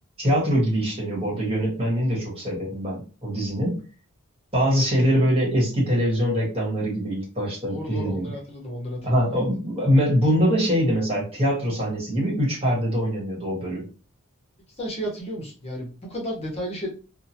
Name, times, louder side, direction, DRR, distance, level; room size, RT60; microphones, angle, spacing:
voice 1, 0.2-3.8 4.5-8.3 9.0-13.9, equal, 25° right, -4 dB, 1.3 m, -23 dB
voice 2, 7.7-9.4 14.8-16.9, equal, 30° left, -2 dB, 1.1 m, -33 dB
2.8 x 2.2 x 2.8 m, 0.34 s
head